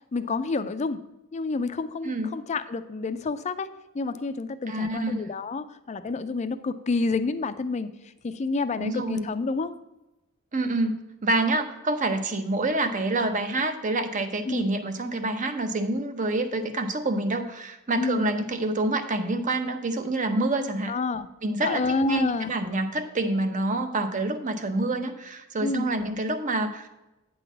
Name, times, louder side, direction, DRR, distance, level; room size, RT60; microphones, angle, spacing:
voice 1, 0.1-1.0 1.3-7.9 8.2-9.7 14.5-14.7 18.0-18.3 20.9-21.3 21.6-22.5 25.6-25.9, left 3 dB, 35° left, 12 dB, 0.4 m, -29 dB
voice 2, 2.0-2.4 4.7-5.3 8.8-9.3 10.5-20.9 21.4-26.9, right 2 dB, 35° right, 8 dB, 0.8 m, -27 dB
9.1 x 3.9 x 7.1 m, 0.97 s
head